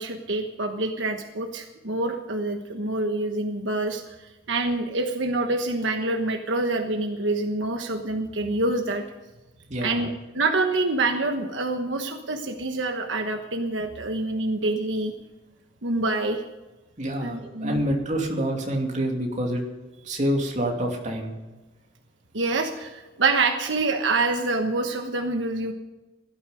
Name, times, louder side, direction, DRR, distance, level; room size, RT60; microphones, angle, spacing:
voice 1, 0.0-9.0 9.8-15.1 15.8-16.4 17.2-17.8 22.3-25.7, right 2 dB, 75° right, 5 dB, 1.2 m, -26 dB
voice 2, 9.7-10.1 17.0-19.6 20.0-21.3, right 1 dB, 40° right, 1 dB, 2.7 m, -27 dB
16.5 x 12.5 x 5.2 m, 1.1 s
head